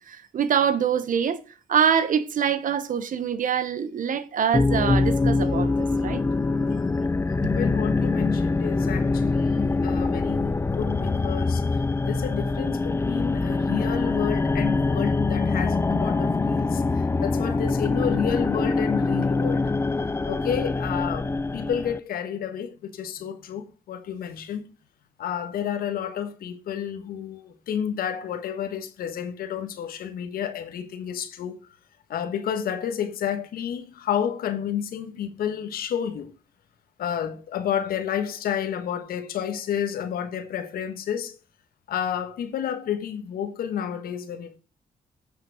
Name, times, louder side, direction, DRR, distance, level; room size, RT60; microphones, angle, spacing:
voice 1, 0.1-1.4 1.7-5.7 6.0-6.2, right 8 dB, 65° right, 1.0 m, -24 dB
sound 1, 4.5-22.0, left 3 dB, 15° left, 0.5 m, -24 dB
voice 2, 7.4-11.6 12.1-19.7 20.3-24.6 25.2-31.6 32.1-36.3 37.0-41.4 41.9-44.6, left 9 dB, 85° left, 1.3 m, -30 dB
9.4 x 5.9 x 4.7 m
cardioid pair, 75°, 15 cm